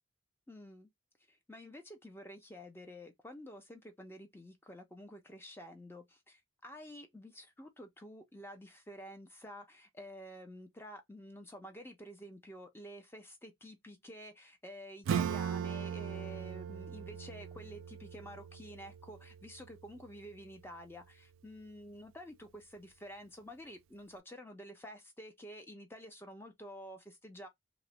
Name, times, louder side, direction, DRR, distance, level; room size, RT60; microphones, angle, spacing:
voice 1, 0.5-0.9 1.3-27.5, equal, 10° left, 0.5 m, -50 dB
Acoustic guitar / Strum, 15.1-20.3, right 8 dB, 70° right, 0.3 m, -39 dB
2.4 x 2.1 x 2.9 m
head